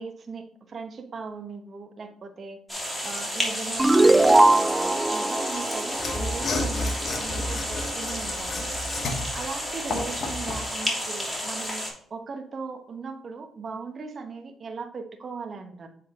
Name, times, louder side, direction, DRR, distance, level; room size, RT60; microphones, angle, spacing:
voice 1, 0.0-2.6 3.0-8.7 9.3-15.9, right 4 dB, 45° right, 5 dB, 1.1 m, -38 dB
sound 1, 2.7-11.9, equal, 10° left, 2.7 m, -32 dB
sound 2, 3.8-7.0, right 2 dB, 15° right, 0.3 m, -21 dB
Mechanisms / Sawing, 5.9-10.7, left 2 dB, 55° left, 1.2 m, -31 dB
7.5 x 4.2 x 3.7 m, 0.68 s
cardioid pair, 90°, 0 cm